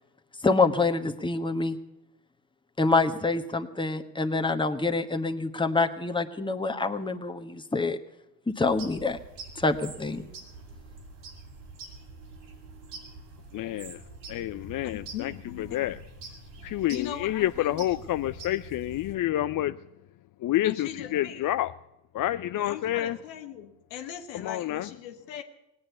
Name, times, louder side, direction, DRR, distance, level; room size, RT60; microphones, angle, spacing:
voice 1, 0.4-1.8 2.8-8.0 8.5-9.2 9.6-10.2, left 3 dB, 10° left, 1.3 m, -26 dB
sound 1, 8.6-19.1, right 3 dB, 75° right, 3.1 m, -46 dB
voice 2, 13.5-14.0 14.3-15.3 15.6-16.0 16.6-19.8 20.4-21.7 22.1-23.2 24.3-24.9, left 13 dB, 40° left, 0.5 m, -28 dB
voice 3, 14.8-15.9 16.9-17.8 20.6-21.5 22.5-25.4, left 10 dB, 90° left, 1.5 m, -39 dB
18.5 x 8.9 x 8.1 m
hypercardioid pair, 65°, 49 cm